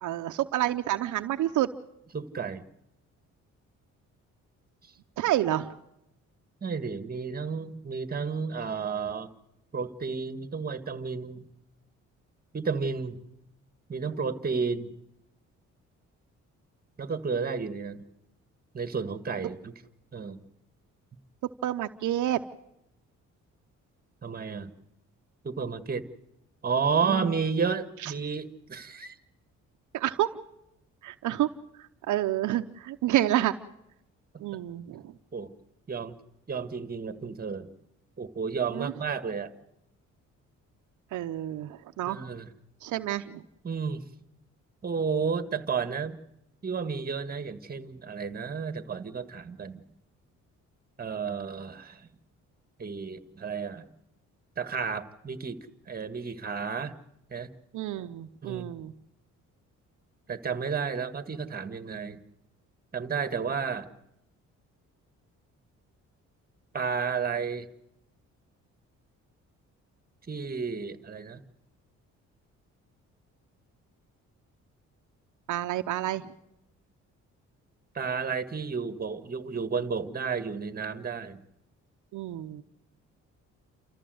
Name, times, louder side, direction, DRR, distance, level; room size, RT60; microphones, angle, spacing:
voice 1, 0.0-1.7 5.2-5.7 21.6-22.4 27.0-27.3 28.0-28.1 29.9-30.3 31.0-31.5 32.1-33.5 34.4-35.0 38.7-38.9 41.1-42.2 42.8-43.4 57.7-58.9 75.5-76.2 82.1-82.6, right 13 dB, 75° right, 7 dB, 0.8 m, -29 dB
voice 2, 2.1-2.6 6.6-9.3 9.7-11.5 12.5-13.2 13.9-14.9 17.0-18.0 18.7-19.7 20.1-20.4 24.2-24.7 25.4-26.1 26.6-29.2 35.3-35.5 35.9-36.1 36.5-37.7 38.2-39.5 42.1-42.5 43.6-44.0 44.8-46.2 46.6-49.8 51.0-52.1 52.8-53.9 54.6-55.6 55.9-56.9 57.3-57.5 58.4-58.7 60.3-62.2 62.9-63.9 66.7-67.7 70.3-71.4 77.9-81.4, right 5 dB, 30° right, 11 dB, 1.7 m, -32 dB
29.0 x 14.5 x 7.8 m, 0.86 s
cardioid pair, 90°, 30 cm